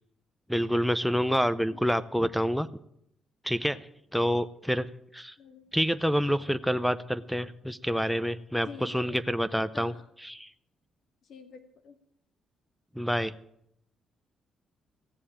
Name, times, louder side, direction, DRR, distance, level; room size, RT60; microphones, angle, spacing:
voice 1, 0.5-2.7 3.4-3.9 4.1-4.9 5.1-5.3 5.7-9.9 10.2-10.5 13.0-13.3, equal, ahead, 11 dB, 0.6 m, -27 dB
voice 2, 8.6-9.2 9.7-10.0 11.3-12.0, left 5 dB, 65° left, 6 dB, 2.0 m, -47 dB
15.5 x 7.6 x 8.7 m, 0.74 s
cardioid pair, 90°, 0 cm